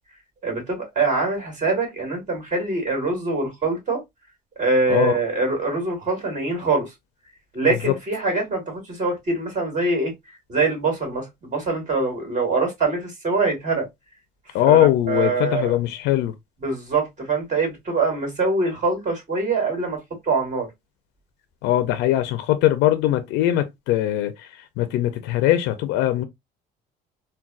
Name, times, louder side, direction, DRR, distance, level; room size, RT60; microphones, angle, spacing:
voice 1, 0.4-4.0 4.6-6.9 7.5-10.1 10.5-13.9 14.7-14.8 15.1-15.7 16.6-20.0 20.2-20.7, right 3 dB, 45° right, 2.1 m, -24 dB
voice 2, 4.9-5.2 7.7-7.9 14.5-16.3 21.6-26.2, left 13 dB, 90° left, 0.4 m, -21 dB
3.8 x 2.2 x 2.3 m
cardioid pair, 110°, 17 cm